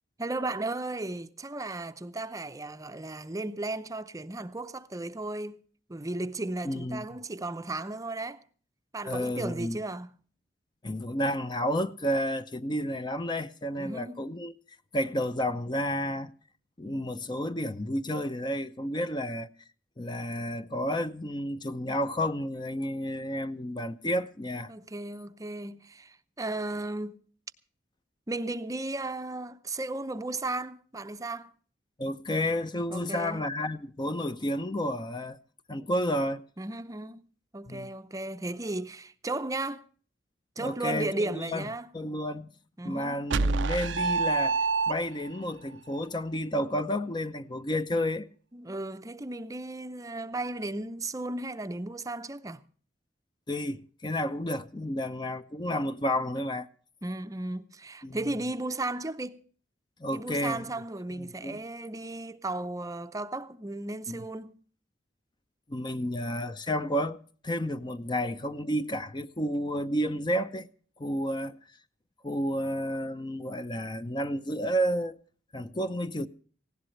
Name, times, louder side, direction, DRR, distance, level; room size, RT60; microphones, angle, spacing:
voice 1, 0.2-5.6 5.9-8.4 8.9-10.1 13.8-14.2 24.7-27.2 28.3-31.5 32.9-33.4 36.6-37.2 37.5-39.8 40.6-41.9 42.8-43.2 48.5-52.6 57.0-59.4 60.1-64.5, right 2 dB, 20° right, 0.6 m, -35 dB
voice 2, 6.6-7.1 9.1-9.8 10.8-14.6 14.9-16.3 16.8-19.5 20.0-24.7 32.0-35.4 35.7-36.4 37.7-37.9 40.6-41.7 41.9-42.5 42.8-48.3 53.5-56.7 58.0-58.3 60.0-60.7 61.1-61.6 64.1-64.2 65.7-70.7 71.0-71.6 72.2-75.2 75.5-76.3, equal, 25° left, 0.6 m, -31 dB
sound 1, 43.3-45.4, right 4 dB, 80° right, 0.6 m, -26 dB
19.0 x 16.5 x 3.2 m
head